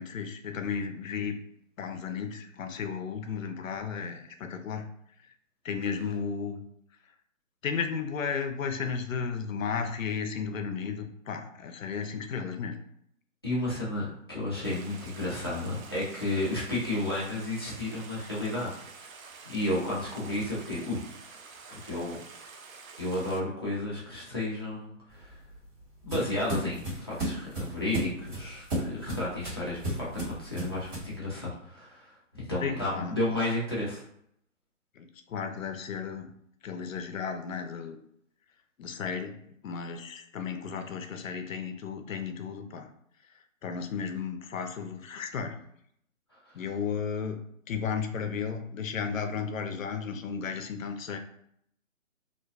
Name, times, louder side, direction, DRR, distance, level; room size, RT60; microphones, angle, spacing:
voice 1, 0.0-1.4 1.8-4.9 5.6-6.6 7.6-12.8 32.6-33.2 35.0-36.3 36.6-38.0 38.8-39.4 39.6-42.9 43.6-45.6 46.5-47.4 47.7-51.2, left 6 dB, 75° left, 7 dB, 0.5 m, -34 dB
voice 2, 13.4-18.8 19.4-21.0 21.7-22.2 23.0-25.3 26.0-34.0, left 1 dB, 20° left, -8 dB, 0.4 m, -32 dB
Stream, 14.6-23.4, right 4 dB, 90° right, 0.6 m, -48 dB
sound 1, 25.1-31.2, right 1 dB, 40° right, 1.4 m, -35 dB
2.4 x 2.1 x 2.3 m, 0.70 s
hypercardioid pair, 150°, 40 cm